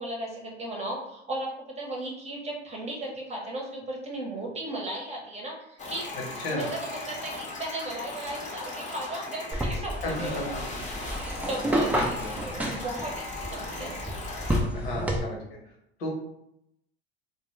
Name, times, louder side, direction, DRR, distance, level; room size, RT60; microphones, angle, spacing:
voice 1, 0.0-6.1 6.5-10.7 11.0-14.0, right 1 dB, 20° right, -1 dB, 0.8 m, -36 dB
sound 1, 5.8-14.6, left 2 dB, 25° left, 0.7 m, -38 dB
sound 2, 9.5-15.2, equal, 5° right, 0.3 m, -30 dB
voice 2, 11.9-12.4 14.7-15.6 16.0-16.1, left 1 dB, 75° left, -2 dB, 1.0 m, -33 dB
2.2 x 2.2 x 3.1 m, 0.80 s
hypercardioid pair, 80°, 30 cm